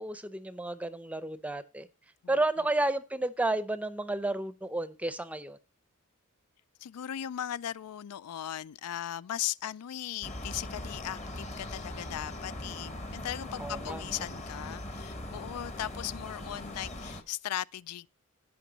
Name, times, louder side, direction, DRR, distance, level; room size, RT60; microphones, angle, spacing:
voice 1, 0.0-1.9 2.3-5.6 13.6-14.2, right 2 dB, 5° right, 0.6 m, -32 dB
voice 2, 6.8-18.1, left 11 dB, 85° left, 0.4 m, -38 dB
sound 1, 10.2-17.2, left 1 dB, 30° left, 1.1 m, -40 dB
16.0 x 5.4 x 3.9 m
head